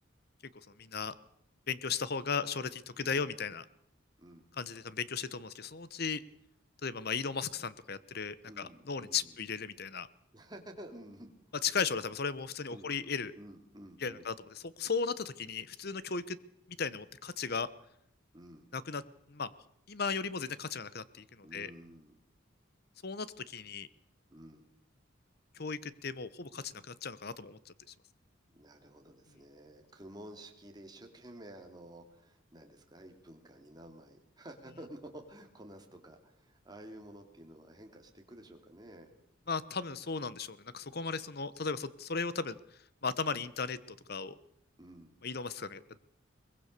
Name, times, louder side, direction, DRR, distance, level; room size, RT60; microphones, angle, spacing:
voice 1, 0.8-1.1 1.7-3.6 4.6-6.2 6.8-10.1 11.6-13.3 14.0-16.4 16.8-17.7 18.7-19.0 19.3-19.5 19.9-21.7 23.0-23.9 25.5-27.7 39.5-42.6 43.0-44.4 45.2-46.0, left 5 dB, 50° left, 16 dB, 1.0 m, -36 dB
voice 2, 3.0-3.3 4.2-4.4 8.5-9.4 10.3-11.3 12.7-13.0 13.3-14.2 18.3-18.7 21.4-22.2 24.3-24.7 28.5-39.1 44.8-45.2, right 1 dB, 20° right, 3 dB, 2.8 m, -51 dB
22.5 x 21.0 x 6.7 m, 0.75 s
head